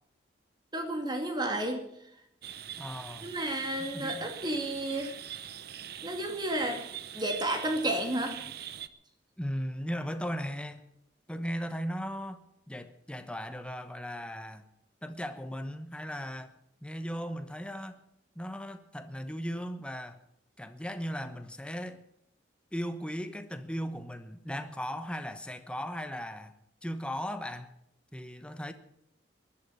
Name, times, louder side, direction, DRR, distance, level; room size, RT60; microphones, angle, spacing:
voice 1, 0.7-1.8 3.2-5.1 6.0-6.8 7.1-8.4, right 1 dB, 25° right, 4 dB, 2.4 m, -31 dB
sound 1, 2.4-8.9, right 10 dB, 60° right, 0.8 m, -43 dB
voice 2, 2.8-3.3 3.8-4.3 9.4-10.8 11.3-14.6 15.0-16.5 16.8-18.0 18.3-20.2 20.6-22.0 22.7-26.5 26.8-27.7 28.1-28.7, equal, 5° left, 9 dB, 1.0 m, -37 dB
20.0 x 11.5 x 5.6 m, 0.77 s
head